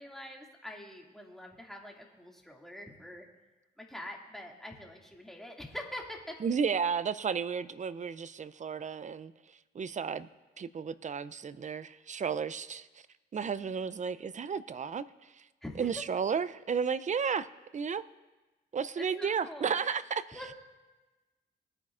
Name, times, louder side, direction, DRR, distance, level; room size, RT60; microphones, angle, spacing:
voice 1, 0.0-3.3 3.8-6.4 13.6-13.8 15.6-16.0 19.0-19.7 20.3-20.5, left 1 dB, ahead, 2.3 m, -44 dB
voice 2, 6.4-9.3 9.7-10.3 10.6-12.9 13.3-15.4 15.8-17.5 17.7-18.0 18.7-20.4, right 6 dB, 40° right, 0.5 m, -33 dB
21.5 x 9.6 x 2.5 m
cardioid pair, 75°, 18 cm